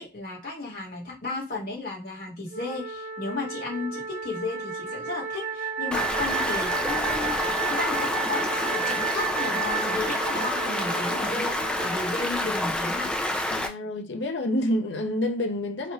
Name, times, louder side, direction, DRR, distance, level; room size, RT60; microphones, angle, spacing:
voice 1, 0.0-13.1, left 3 dB, 50° left, 2.2 m, -34 dB
Wind instrument woodwind instrument, 2.5-12.9, right 5 dB, 45° right, 0.6 m, -32 dB
Stream, 5.9-13.7, left 1 dB, 5° left, 0.4 m, -28 dB
voice 2, 13.5-15.9, left 1 dB, 70° left, 0.7 m, -28 dB
4.3 x 3.0 x 2.6 m
head